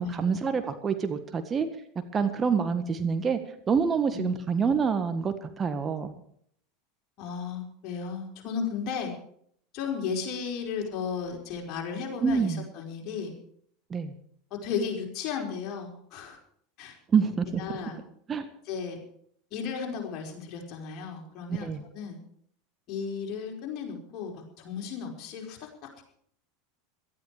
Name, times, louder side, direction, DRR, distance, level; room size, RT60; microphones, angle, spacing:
voice 1, 0.0-1.7 2.1-3.4 3.7-6.1 12.2-12.6 13.9-14.1 17.1-17.6 18.3-18.5 21.6-21.8, right 6 dB, 25° right, 8 dB, 1.6 m, -26 dB
voice 2, 7.2-9.1 9.7-13.3 14.5-16.4 16.8-17.0 17.6-18.0 18.6-19.0 19.5-22.2 22.9-26.0, left 6 dB, 45° left, 0 dB, 5.0 m, -34 dB
18.0 x 13.0 x 4.9 m, 0.64 s
figure-of-eight pair, 80°, 0 cm